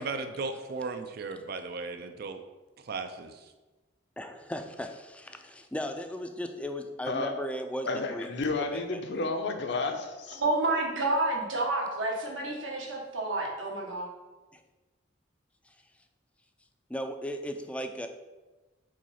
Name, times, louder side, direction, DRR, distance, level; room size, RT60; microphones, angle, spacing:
voice 1, 0.0-2.4 2.8-3.5, right 3 dB, 55° right, 7 dB, 0.4 m, -36 dB
voice 2, 4.2-8.3 8.7-9.0 14.5-14.6 15.7-15.8 16.9-18.1, equal, 5° left, 6 dB, 0.4 m, -36 dB
voice 3, 7.8-10.4, left 3 dB, 60° left, 5 dB, 0.8 m, -31 dB
voice 4, 10.4-14.1, right 2 dB, 85° right, -1 dB, 1.5 m, -29 dB
5.1 x 3.9 x 5.7 m, 1.2 s
head